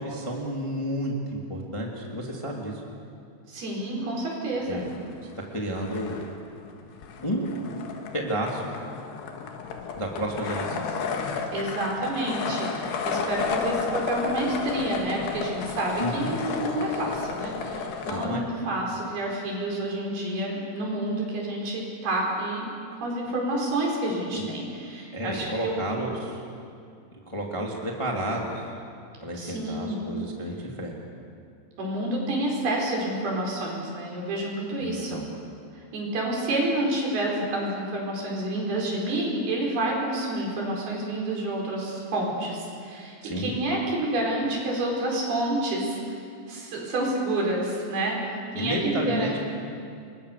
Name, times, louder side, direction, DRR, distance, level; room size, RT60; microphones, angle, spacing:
voice 1, 0.0-2.8 4.7-4.9 5.2-6.2 7.2-7.5 8.1-8.7 9.9-10.9 16.0-16.3 18.1-18.4 24.4-24.5 25.1-26.4 27.1-28.7 29.2-30.9 34.8-35.2 43.2-43.5 48.5-49.4, right 1 dB, 10° left, -1 dB, 1.9 m, -31 dB
voice 2, 3.5-4.9 11.5-22.7 23.0-25.8 29.3-30.0 31.8-35.2 35.7-49.4, right 1 dB, 70° right, -2 dB, 6.7 m, -29 dB
sound 1, 4.7-5.5 5.7-18.3, left 5 dB, 90° left, 3.9 m, -32 dB
29.0 x 22.5 x 6.8 m, 2.4 s
omnidirectional pair, 4.7 m